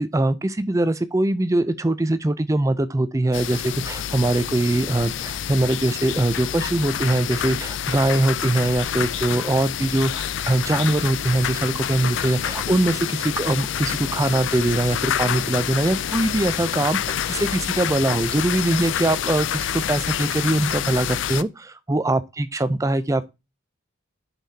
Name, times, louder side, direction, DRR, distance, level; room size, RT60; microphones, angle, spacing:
voice 1, 0.0-23.3, right 2 dB, 15° right, 0.4 m, -22 dB
sound 1, 3.3-21.4, left 9 dB, 65° left, 0.4 m, -28 dB
10.5 x 5.7 x 2.7 m
head